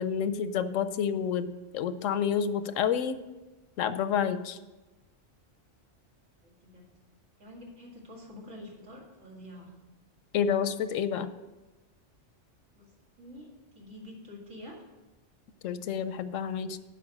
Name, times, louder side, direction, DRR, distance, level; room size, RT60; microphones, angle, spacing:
voice 1, 0.0-3.2 3.8-4.6 10.3-11.3 15.6-16.8, left 7 dB, 90° left, 13 dB, 1.0 m, -29 dB
voice 2, 6.4-6.8 7.4-9.7 12.7-12.9 13.2-13.5 13.7-14.8, left 1 dB, 90° right, -3 dB, 2.6 m, -47 dB
7.8 x 5.5 x 7.6 m, 1.1 s
omnidirectional pair, 1.3 m